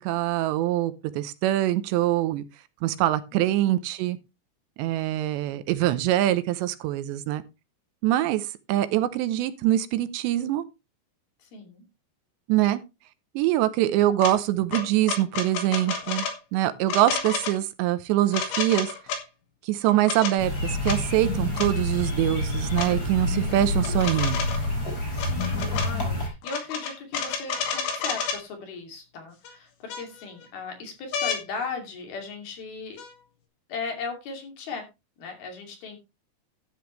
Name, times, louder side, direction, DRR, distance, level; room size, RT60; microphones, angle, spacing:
voice 1, 0.0-2.4 2.8-4.2 4.8-7.4 8.0-10.6 12.5-12.8 13.4-16.3 16.5-18.9 19.6-24.4, right 14 dB, 90° right, 3.0 m, -24 dB
voice 2, 3.3-3.6 11.4-11.8 25.1-33.0 33.7-34.9 35.2-36.0, left 4 dB, 60° left, 4.5 m, -37 dB
sound 1, 14.2-14.3 14.7-16.4 16.9-17.5 18.3-19.2 19.9-20.3 20.8-21.0 21.5-21.7 22.8-22.9 23.8-24.7 25.1-25.9 26.4-28.4 29.4-29.5 29.9-30.4 31.1-31.4 33.0-33.1, left 5 dB, 80° left, 4.5 m, -30 dB
sound 2, 20.4-26.3, left 2 dB, 20° left, 4.9 m, -28 dB
12.5 x 9.4 x 3.2 m
omnidirectional pair, 5.1 m